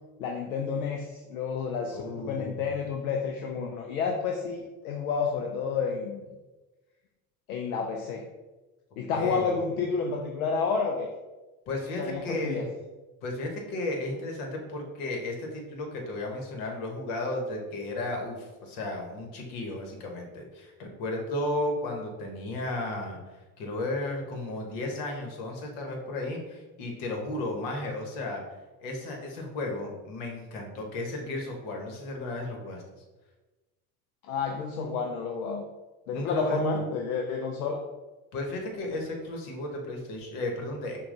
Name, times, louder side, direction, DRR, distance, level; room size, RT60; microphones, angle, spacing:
voice 1, 0.2-6.2 7.5-8.3 9.0-11.1 12.0-12.7 34.2-35.6 36.1-37.8, left 5 dB, 85° left, 3 dB, 0.5 m, -30 dB
voice 2, 1.9-2.7 9.1-9.7 11.7-12.7 13.2-28.4 28.8-32.8 36.1-36.6 38.3-41.0, left 2 dB, 70° left, 2 dB, 1.2 m, -34 dB
5.8 x 2.3 x 3.8 m, 1.2 s
hypercardioid pair, 60°, 42 cm